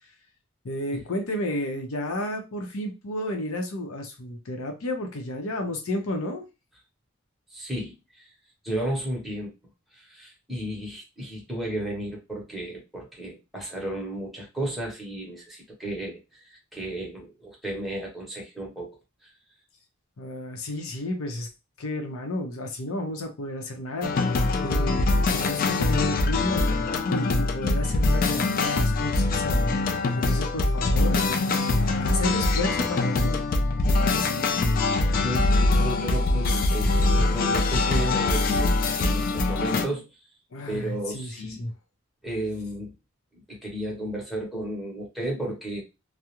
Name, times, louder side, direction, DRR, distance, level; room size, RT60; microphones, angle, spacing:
voice 1, 0.6-6.4 20.2-21.5 21.8-24.1 24.6-33.4 33.9-34.4 40.5-41.7, left 1 dB, 85° left, 3 dB, 0.6 m, -32 dB
voice 2, 7.5-8.3 8.6-9.5 9.9-19.0 35.1-40.1 40.6-41.6 42.2-42.9 43.3-45.8, right 1 dB, ahead, -3 dB, 0.8 m, -33 dB
sound 1, 24.0-39.9, left 2 dB, 45° left, 0.3 m, -23 dB
2.3 x 2.0 x 2.9 m, 0.26 s
head